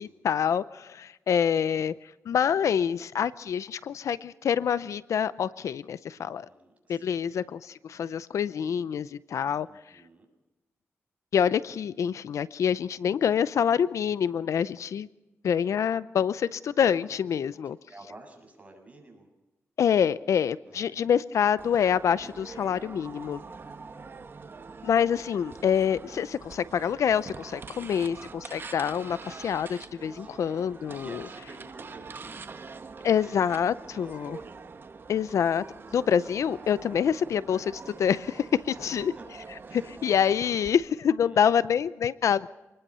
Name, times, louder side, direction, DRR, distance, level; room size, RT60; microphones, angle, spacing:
voice 1, 0.0-1.9 2.3-6.5 6.9-9.7 11.3-15.1 15.4-17.8 19.8-23.4 24.8-31.2 33.0-34.4 35.1-35.7 35.9-39.1 40.0-42.5, left 8 dB, 80° left, 17 dB, 0.6 m, -26 dB
voice 2, 6.2-7.3 9.7-10.3 17.6-19.3 20.7-21.0 21.4-21.5 23.4-23.9 30.1-30.5 31.0-32.5 33.0-34.3 38.7-39.3 39.6-39.9 41.2-41.6, right 2 dB, 25° right, 3 dB, 7.2 m, -51 dB
sound 1, 21.6-40.7, right 4 dB, 45° right, 1.6 m, -44 dB
26.5 x 20.5 x 5.6 m, 1.0 s
cardioid pair, 85°, 5 cm